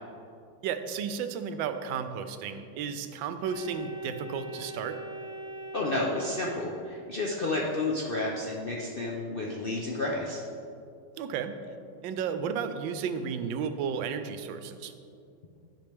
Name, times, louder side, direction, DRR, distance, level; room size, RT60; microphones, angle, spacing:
voice 1, 0.6-5.0 11.2-11.5 12.0-14.9, right 7 dB, 90° right, 9 dB, 1.3 m, -33 dB
Organ, 3.4-7.3, right 1 dB, 45° left, 1.3 m, -41 dB
voice 2, 5.7-10.4, left 2 dB, 80° left, -3 dB, 0.4 m, -31 dB
11.5 x 5.7 x 3.4 m, 2.5 s
omnidirectional pair, 2.0 m